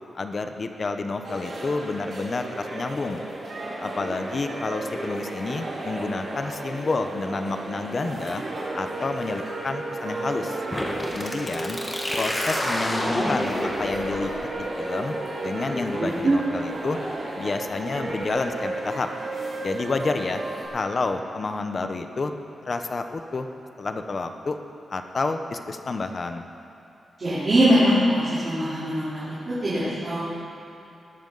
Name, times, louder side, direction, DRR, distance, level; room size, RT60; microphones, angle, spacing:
voice 1, 0.1-3.2 3.8-8.4 8.7-10.6 11.1-11.8 12.1-15.1 15.4-17.0 17.4-19.1 19.6-20.4 20.7-22.3 22.6-23.5 23.8-24.6 24.9-26.5, left 3 dB, 30° left, 7 dB, 0.7 m, -29 dB
sound 1, 1.2-20.7, right 2 dB, 55° right, 3.9 m, -33 dB
sound 2, 10.7-18.2, left 1 dB, 10° left, 1.4 m, -31 dB
voice 2, 16.0-16.3 27.2-30.2, equal, 35° right, -12 dB, 3.6 m, -22 dB
19.5 x 13.0 x 4.0 m, 2.7 s
wide cardioid pair, 180°, 0 cm